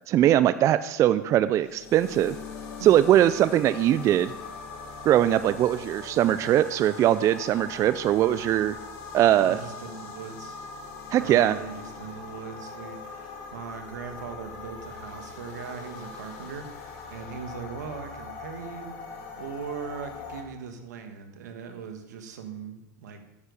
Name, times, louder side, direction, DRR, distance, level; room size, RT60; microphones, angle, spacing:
voice 1, 0.1-2.4 2.8-4.3 5.1-8.8 9.1-9.6 11.1-11.6, right 12 dB, 35° right, 14 dB, 0.3 m, -21 dB
sound 1, 1.5-20.4, left 4 dB, 60° left, 2.0 m, -41 dB
voice 2, 9.4-10.6 11.2-18.9 19.3-23.2, right 6 dB, 90° right, 6 dB, 1.3 m, -40 dB
8.7 x 6.8 x 5.3 m, 0.94 s
supercardioid pair, 120°, 9 cm